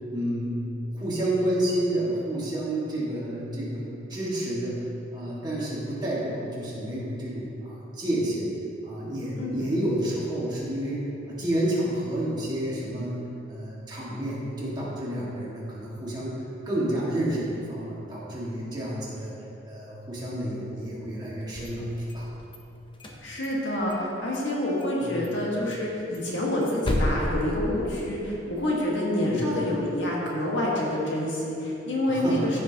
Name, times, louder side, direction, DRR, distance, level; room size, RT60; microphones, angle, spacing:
voice 1, 0.1-0.6 0.9-4.8 5.1-8.5 8.8-19.3 19.6-21.9 22.1-22.3 25.0-25.3 29.2-29.5 32.1-32.6, right 1 dB, 20° right, -7 dB, 1.9 m, -30 dB
sound 1, 21.4-22.6 22.9-24.1 24.3-24.4 24.8-25.0 25.2-25.3 25.7-28.3, left 1 dB, 25° left, 0.7 m, -32 dB
voice 2, 23.2-32.6, left 1 dB, 70° left, -4 dB, 1.7 m, -27 dB
14.0 x 5.3 x 2.9 m, 2.9 s
head